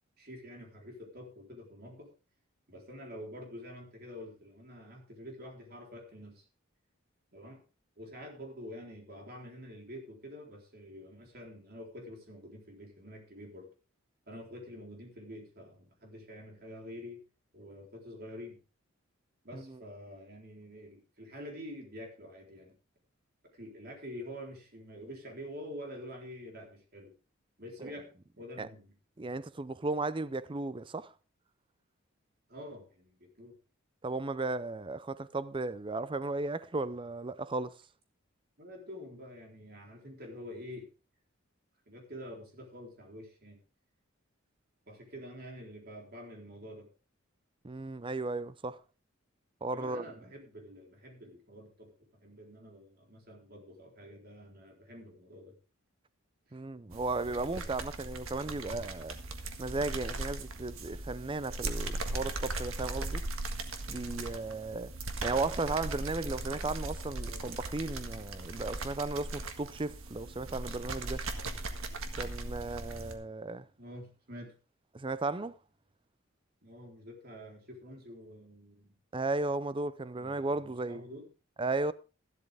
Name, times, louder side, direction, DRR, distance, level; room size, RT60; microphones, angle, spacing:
voice 1, 0.2-2.1 2.7-6.4 7.3-7.6 8.0-13.7 14.3-17.2 17.5-18.6 19.4-22.7 23.5-27.1 27.6-28.1 28.4-28.9 32.5-33.6 38.6-40.9 41.9-43.6 44.9-46.9 49.7-55.6 56.5-56.6 67.2-67.6 73.8-74.5 76.6-78.9 80.2-81.3, equal, 45° right, 3.9 m, -47 dB
voice 2, 29.2-31.1 34.0-37.8 47.6-48.8 49.6-50.1 56.5-59.2 59.6-63.2 63.9-64.9 65.2-71.2 72.2-73.7 74.9-75.5 79.1-81.0 81.6-81.9, right 3 dB, 25° right, 0.5 m, -35 dB
sound 1, 56.9-73.2, right 2 dB, 80° right, 1.7 m, -38 dB
13.5 x 12.0 x 3.5 m
head